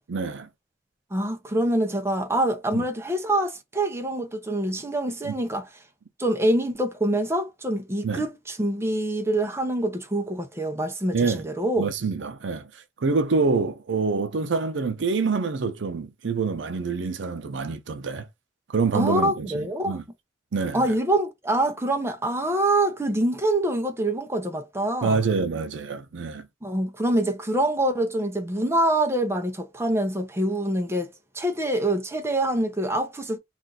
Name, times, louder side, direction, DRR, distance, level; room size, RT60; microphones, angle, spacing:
voice 1, 0.1-0.5 2.7-2.9 5.2-5.3 8.0-8.3 11.1-11.5 11.8-12.7 13.0-18.3 18.7-20.0 20.5-20.9 25.0-26.5, right 4 dB, 90° right, 0.6 m, -26 dB
voice 2, 1.1-5.7 6.2-11.8 18.9-20.0 20.7-25.2 26.6-33.4, right 1 dB, 15° right, 0.6 m, -25 dB
2.5 x 2.4 x 3.9 m
head